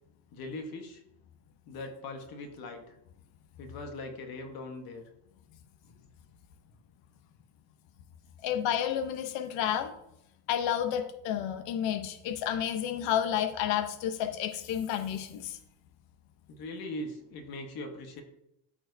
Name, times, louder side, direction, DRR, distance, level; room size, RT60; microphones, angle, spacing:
voice 1, 0.3-1.0 1.7-3.0 3.6-5.0 16.5-18.2, left 2 dB, 45° left, 4 dB, 1.2 m, -40 dB
voice 2, 8.4-9.9 10.5-15.6, left 10 dB, 60° left, 7 dB, 0.9 m, -30 dB
13.5 x 4.5 x 2.7 m, 0.80 s
cardioid pair, 165°, 49 cm